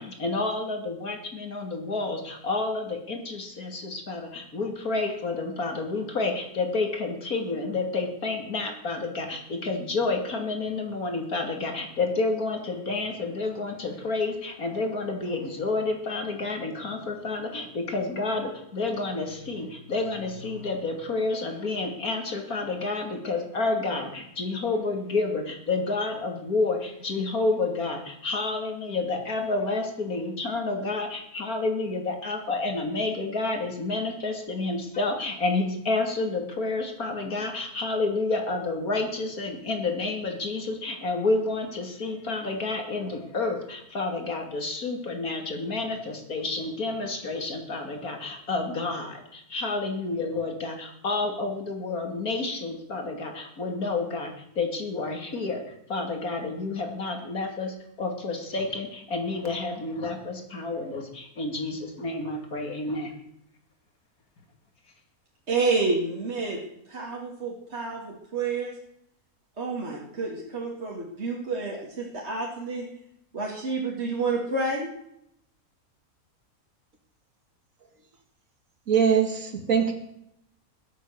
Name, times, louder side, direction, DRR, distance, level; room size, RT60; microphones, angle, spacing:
voice 1, 0.0-55.6 55.9-63.1, left 3 dB, 70° left, 3 dB, 3.2 m, -29 dB
voice 2, 65.5-66.6 66.9-68.7 69.6-72.9 73.3-74.9, right 3 dB, 45° right, -3 dB, 2.6 m, -29 dB
voice 3, 78.9-79.9, right 7 dB, 60° right, 6 dB, 2.1 m, -22 dB
21.5 x 8.4 x 6.7 m, 0.76 s
omnidirectional pair, 1.6 m